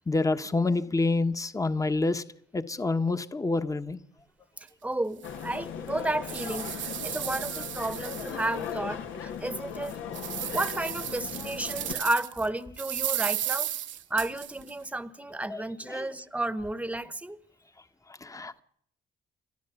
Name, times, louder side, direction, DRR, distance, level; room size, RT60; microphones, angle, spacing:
voice 1, 0.1-2.2 2.5-4.0 15.5-15.6 15.9-16.1 18.2-18.6, left 3 dB, 15° left, 1.2 m, -27 dB
sound 1, 4.6-4.7 5.2-5.3 5.9-8.7 9.1-9.2 9.7-12.5 12.8-14.7, right 11 dB, 70° right, 1.1 m, -34 dB
voice 2, 4.8-9.9 10.5-13.7 14.1-17.4, right 2 dB, 5° right, 1.2 m, -32 dB
sound 2, 5.2-11.9, left 7 dB, 85° left, 2.1 m, -38 dB
30.0 x 12.5 x 7.0 m
cardioid pair, 90°, 20 cm